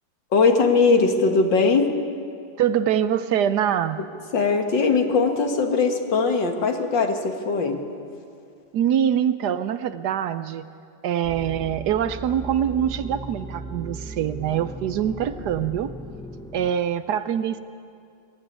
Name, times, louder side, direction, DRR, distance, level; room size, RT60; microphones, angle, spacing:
voice 1, 0.3-1.9 4.3-7.8, left 4 dB, 80° left, 4 dB, 2.3 m, -20 dB
voice 2, 2.6-4.0 8.7-10.7 11.0-15.9 16.5-17.6, right 9 dB, 70° right, 12 dB, 1.2 m, -24 dB
sound 1, 11.2-16.7, right 2 dB, 5° left, 0.5 m, -37 dB
22.0 x 13.5 x 9.4 m, 2.4 s
omnidirectional pair, 2.0 m